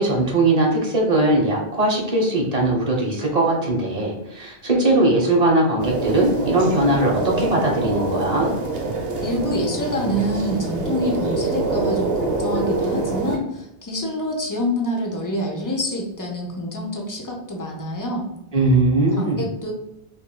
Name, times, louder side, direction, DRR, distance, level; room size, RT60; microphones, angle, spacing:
voice 1, 0.0-8.5 18.5-19.4, right 2 dB, 40° right, -2 dB, 1.2 m, -20 dB
sound 1, 5.8-13.4, right 3 dB, 70° right, 1.0 m, -25 dB
voice 2, 9.2-18.2 19.1-19.7, left 1 dB, 20° left, 0 dB, 0.7 m, -26 dB
5.4 x 3.1 x 2.3 m, 0.87 s
omnidirectional pair, 1.0 m